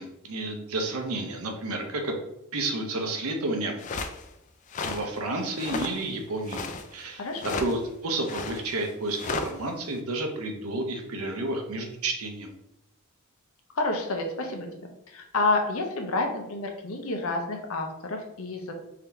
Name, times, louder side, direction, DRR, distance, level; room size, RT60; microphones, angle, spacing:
voice 1, 0.0-2.2 2.5-3.8 4.8-6.6 6.9-7.3 7.6-9.2 9.4-12.6, right 2 dB, 80° right, 3 dB, 0.7 m, -31 dB
sound 1, 3.8-4.2 4.7-5.1 5.5-6.0 6.3-6.9 7.4-7.7 8.2-9.5, left 3 dB, 35° left, 0.3 m, -33 dB
voice 2, 7.1-7.6 13.7-18.7, left 2 dB, 70° left, 4 dB, 0.7 m, -29 dB
3.6 x 2.8 x 3.4 m, 0.85 s
head